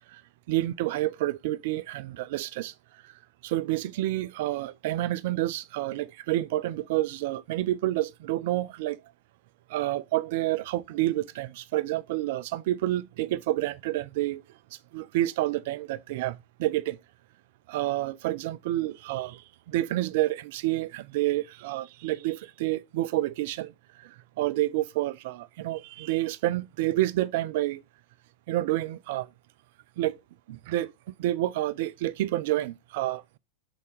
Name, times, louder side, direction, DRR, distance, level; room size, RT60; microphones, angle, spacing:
voice 1, 0.5-2.7 3.0-3.1 3.4-9.0 9.7-14.4 14.7-17.0 17.7-23.7 24.0-27.8 28.5-29.3 30.0-30.2 30.5-30.9 31.2-33.4, right 15 dB, 50° right, 0.5 m, -29 dB
6.5 x 4.0 x 5.2 m
figure-of-eight pair, 90°, 0 cm